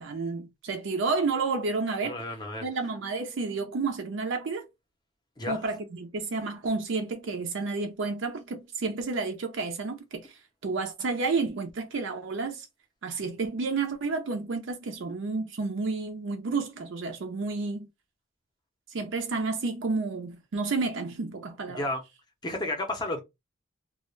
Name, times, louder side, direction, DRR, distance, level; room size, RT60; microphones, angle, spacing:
voice 1, 0.0-2.2 2.6-4.7 5.5-12.7 13.0-17.9 18.9-21.9, right 4 dB, 60° right, 0.4 m, -31 dB
voice 2, 2.1-2.6 5.4-5.7 21.7-22.0 22.4-23.2, left 1 dB, 20° left, 0.6 m, -32 dB
2.3 x 2.1 x 3.0 m
head